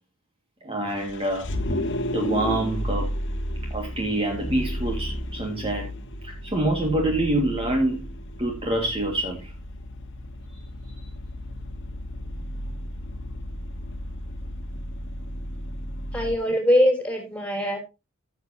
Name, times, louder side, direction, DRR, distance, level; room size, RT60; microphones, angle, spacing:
voice 1, 0.6-1.5 2.1-3.1 3.7-5.9 6.2-8.1 8.4-9.5 10.5-10.6 10.9-11.1, right 1 dB, 25° right, 0 dB, 2.0 m, -26 dB
Vehicle, 0.9-16.3, equal, 60° left, 1.4 m, -33 dB
voice 2, 16.1-17.8, equal, 5° left, 3 dB, 3.5 m, -22 dB
15.5 x 7.4 x 2.8 m, 0.26 s
head